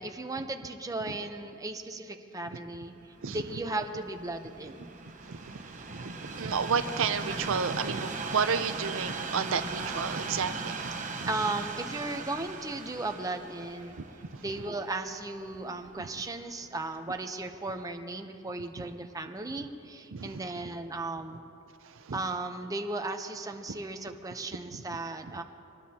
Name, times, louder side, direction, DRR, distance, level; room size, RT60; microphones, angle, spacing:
voice 1, 0.0-2.9 3.3-4.9 11.3-14.0 14.4-21.4 22.1-25.4, right 2 dB, 15° right, 5 dB, 0.7 m, -36 dB
Train, 3.0-16.2 16.9-17.0, right 3 dB, 35° right, 1.0 m, -39 dB
voice 2, 5.3-5.6 5.9-10.8 11.2-11.3 16.0-16.1 18.8-18.9 20.1-20.4 22.1-22.2 23.7-23.8 24.7-24.8, right 6 dB, 65° right, 9 dB, 0.6 m, -31 dB
24.0 x 20.0 x 2.9 m, 2.9 s
head